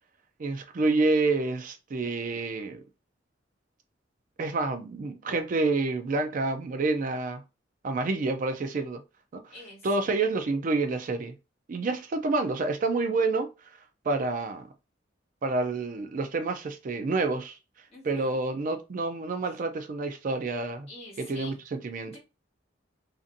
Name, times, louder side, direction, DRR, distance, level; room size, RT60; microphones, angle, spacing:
voice 1, 0.4-2.8 4.4-7.4 7.8-9.0 9.3-9.4 9.8-11.3 11.7-13.5 14.0-14.7 15.4-17.6 18.0-20.9 21.2-22.2, right 3 dB, 45° right, 0.4 m, -28 dB
voice 2, 9.5-10.1 17.9-18.4 20.9-21.6 22.1-22.2, left 2 dB, 35° left, 1.4 m, -47 dB
2.6 x 2.5 x 2.6 m
head